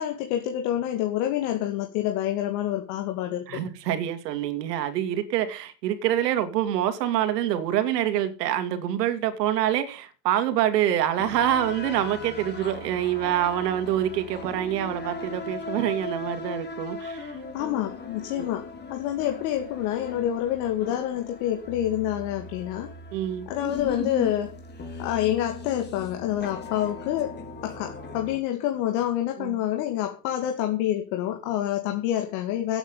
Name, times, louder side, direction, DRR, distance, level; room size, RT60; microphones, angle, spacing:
voice 1, 0.0-3.6 17.5-22.9 23.5-24.6 25.0-27.3 27.6-32.8, left 12 dB, 65° left, 2.5 m, -27 dB
voice 2, 3.5-17.3 18.3-18.4 23.1-23.5 29.4-29.5, right 11 dB, 85° right, 2.7 m, -26 dB
sound 1, 11.2-28.4, left 3 dB, 20° left, 3.8 m, -38 dB
16.5 x 9.0 x 5.5 m
supercardioid pair, 135°, 47 cm